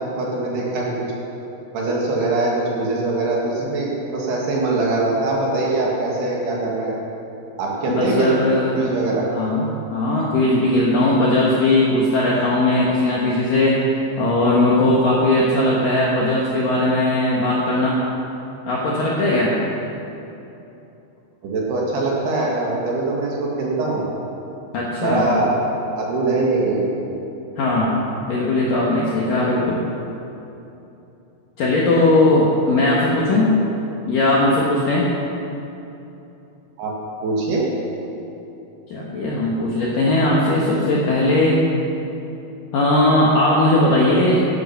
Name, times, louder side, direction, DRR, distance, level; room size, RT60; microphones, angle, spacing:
voice 1, 0.2-0.9 1.7-6.9 7.6-8.3 8.7-9.3 21.4-24.1 25.0-25.7 26.0-26.9 36.8-36.9 37.2-37.7, right 2 dB, 60° right, -3 dB, 3.5 m, -22 dB
voice 2, 7.9-8.9 9.3-13.8 14.2-18.0 18.7-19.6 24.7-25.3 27.6-27.9 28.3-29.8 31.6-33.5 34.1-35.1 38.9-41.6 42.7-44.4, left 2 dB, 70° left, -5 dB, 2.2 m, -18 dB
14.5 x 11.0 x 5.8 m, 2.9 s
omnidirectional pair, 5.9 m